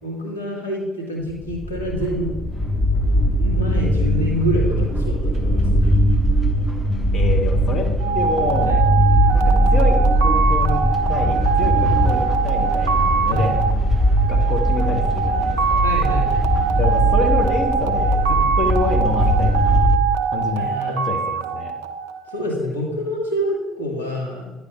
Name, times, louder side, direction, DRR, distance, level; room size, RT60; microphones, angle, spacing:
voice 1, 0.0-2.3 3.4-5.9 8.7-8.8 11.8-12.0 13.3-13.5 15.8-16.7 20.6-21.0 22.3-24.5, equal, 85° left, -3 dB, 1.4 m, -27 dB
sound 1, 1.3-20.0, equal, 10° left, 1.0 m, -20 dB
voice 2, 7.1-7.9 8.1-8.8 9.3-13.6 14.3-15.9 16.8-19.9 20.3-21.7, left 3 dB, 45° left, 1 dB, 1.0 m, -27 dB
sound 2, 8.0-22.5, right 7 dB, 70° right, 0.5 m, -23 dB
9.8 x 3.4 x 5.0 m, 1.1 s
figure-of-eight pair, 50°, 0 cm